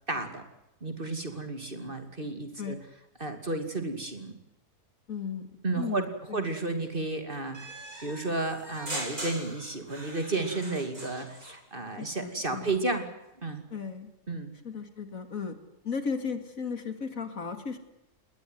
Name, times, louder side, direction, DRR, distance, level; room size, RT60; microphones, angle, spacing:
voice 1, 0.1-0.4 0.8-2.8 3.2-4.4 5.6-6.1 6.3-13.1 13.4-13.6 14.3-14.5, right 3 dB, 35° right, 7 dB, 2.8 m, -32 dB
voice 2, 5.1-6.5 12.0-12.8 13.7-14.1 14.6-15.6 15.8-17.8, left 5 dB, 55° left, 8 dB, 2.5 m, -35 dB
sound 1, 7.5-11.6, right 1 dB, 65° right, 8.0 m, -40 dB
20.5 x 18.5 x 9.4 m, 0.89 s
omnidirectional pair, 1.7 m